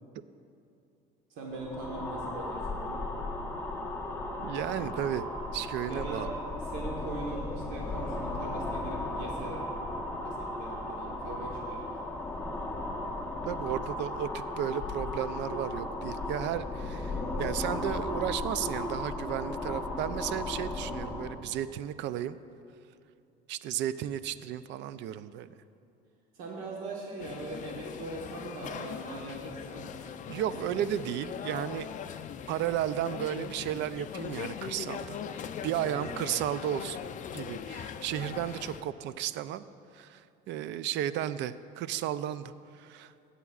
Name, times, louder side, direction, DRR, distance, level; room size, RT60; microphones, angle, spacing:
voice 1, 1.3-3.0 5.9-6.2 6.7-9.7 10.2-11.8 14.6-14.7 26.3-29.9 30.5-30.8 35.8-36.2, right 2 dB, 80° right, -2 dB, 1.3 m, -41 dB
sound 1, 1.5-21.4, left 2 dB, 10° left, 1.0 m, -36 dB
voice 2, 4.4-5.3 5.5-6.3 13.4-22.4 23.5-25.5 30.0-31.9 32.5-39.6 39.9-43.1, right 11 dB, 65° right, 14 dB, 0.4 m, -34 dB
sound 2, 27.2-38.8, left 8 dB, 40° left, 0.4 m, -40 dB
17.0 x 8.3 x 2.4 m, 2.6 s
cardioid pair, 115°, 20 cm